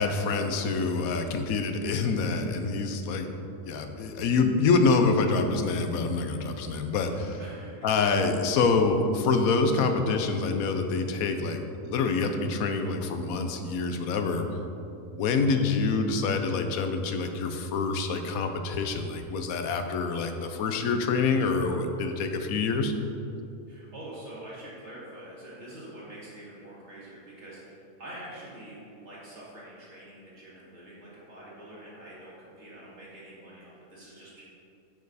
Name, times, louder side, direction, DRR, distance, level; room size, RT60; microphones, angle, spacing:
voice 1, 0.0-3.3 3.6-7.4 7.8-14.5 15.1-22.9, left 4 dB, 85° left, 6 dB, 1.1 m, -26 dB
voice 2, 7.4-7.9 23.7-34.4, right 1 dB, 55° right, -7 dB, 2.4 m, -45 dB
9.0 x 5.4 x 4.0 m, 2.7 s
omnidirectional pair, 1.4 m